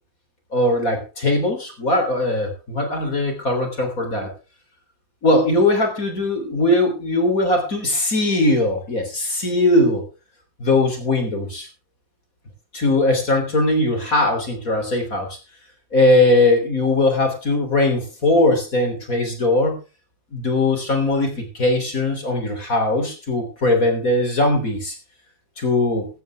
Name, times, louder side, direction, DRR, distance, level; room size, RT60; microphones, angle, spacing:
voice 1, 0.5-4.3 5.2-10.0 10.6-11.7 12.7-15.4 15.9-19.7 20.3-24.9 25.6-26.1, left 2 dB, 20° left, 4 dB, 3.0 m, -20 dB
16.0 x 13.5 x 3.5 m, 0.31 s
omnidirectional pair, 4.8 m